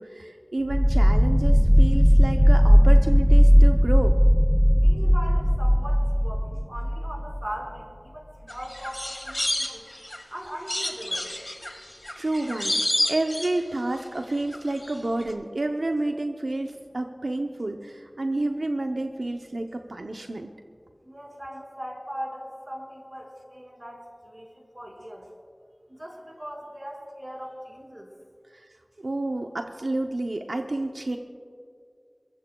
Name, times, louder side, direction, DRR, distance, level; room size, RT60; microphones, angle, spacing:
voice 1, 0.0-4.1 12.2-20.5 28.5-28.6 29.0-31.2, right 2 dB, 90° right, 4 dB, 0.6 m, -29 dB
sound 1, 0.7-7.4, equal, 5° left, 0.4 m, -17 dB
voice 2, 4.7-9.9 10.3-11.3 21.0-25.3 25.9-28.1, equal, 30° right, -1 dB, 4.9 m, -39 dB
sound 2, 8.5-10.2 10.7-14.0 14.3-14.9 15.2-15.3, left 1 dB, 35° left, 1.6 m, -29 dB
22.5 x 22.0 x 2.3 m, 2.2 s
wide cardioid pair, 40°, 0 cm